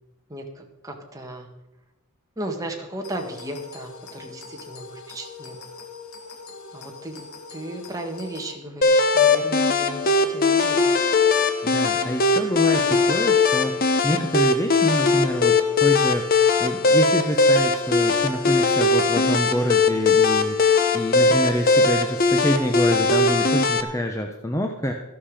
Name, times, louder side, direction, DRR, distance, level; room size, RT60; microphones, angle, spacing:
voice 1, 0.3-1.5 2.4-5.6 6.7-10.9, right 1 dB, 15° right, 2 dB, 1.8 m, -35 dB
sound 1, 3.0-8.5, left 4 dB, 80° left, 2.1 m, -42 dB
sound 2, 8.8-23.8, left 3 dB, 40° left, 0.9 m, -20 dB
voice 2, 11.6-13.8 14.0-16.3 16.6-20.6 20.9-24.9, equal, 15° left, 3 dB, 0.8 m, -26 dB
14.0 x 11.5 x 5.0 m, 0.92 s
head